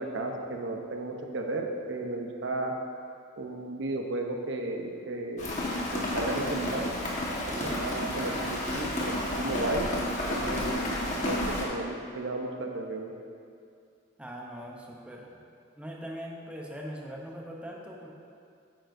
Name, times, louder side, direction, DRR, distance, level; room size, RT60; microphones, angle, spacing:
voice 1, 0.0-2.7 3.4-5.6 5.9-6.9 7.5-9.9 10.3-13.1, right 2 dB, 70° right, 2 dB, 0.8 m, -34 dB
Rain, 5.4-11.6, left 1 dB, 40° left, 1.4 m, -31 dB
voice 2, 7.5-7.9 14.2-15.4 15.8-18.2, equal, 5° right, -1 dB, 0.7 m, -41 dB
9.1 x 9.1 x 2.6 m, 2.4 s
head